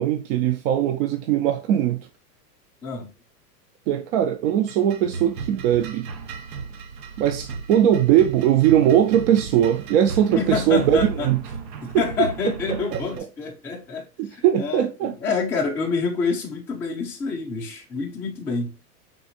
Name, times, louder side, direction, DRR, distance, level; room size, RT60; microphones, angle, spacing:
voice 1, 0.0-2.1 3.9-6.1 7.2-11.4 11.9-12.3 12.7-13.3 14.2-15.1, right 10 dB, 50° right, 0.4 m, -20 dB
sound 1, 4.5-13.2, right 5 dB, 90° right, 0.7 m, -35 dB
voice 2, 10.4-11.3 11.8-18.7, left 5 dB, 5° left, 0.4 m, -27 dB
3.8 x 2.4 x 2.7 m
hypercardioid pair, 120°, 48 cm